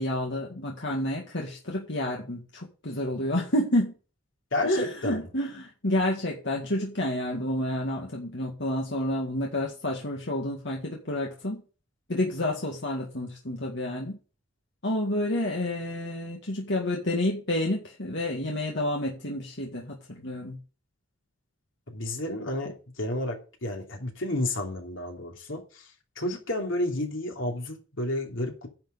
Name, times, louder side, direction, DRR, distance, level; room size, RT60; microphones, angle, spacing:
voice 1, 0.0-3.9 4.6-11.6 12.1-14.2 14.8-20.6, left 1 dB, 65° left, 2.1 m, -29 dB
voice 2, 4.5-5.2 21.9-25.8 26.2-28.7, left 1 dB, 80° left, 3.1 m, -31 dB
10.5 x 5.0 x 8.0 m
head